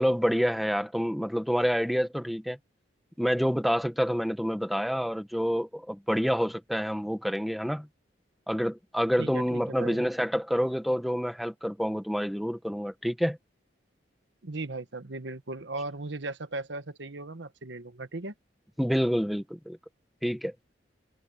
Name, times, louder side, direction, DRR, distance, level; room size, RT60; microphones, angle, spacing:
voice 1, 0.0-2.6 3.2-7.9 8.5-13.4 18.8-19.8 20.2-20.5, equal, ahead, 1.5 m, -28 dB
voice 2, 9.2-10.0 14.4-18.3, right 2 dB, 75° right, 1.3 m, -37 dB
head